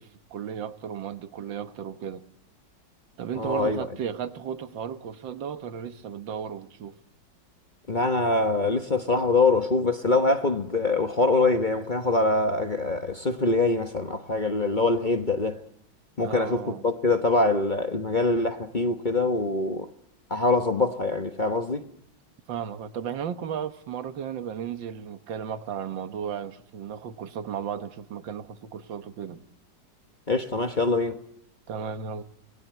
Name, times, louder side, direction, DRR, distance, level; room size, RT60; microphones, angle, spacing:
voice 1, 0.0-2.3 3.2-6.9 16.2-16.8 22.5-29.4 31.7-32.2, right 8 dB, 80° right, 1.9 m, -34 dB
voice 2, 3.4-3.9 7.9-15.6 16.2-19.9 20.3-21.8 30.3-31.2, left 3 dB, 30° left, 1.1 m, -24 dB
28.0 x 20.0 x 9.4 m
omnidirectional pair, 2.0 m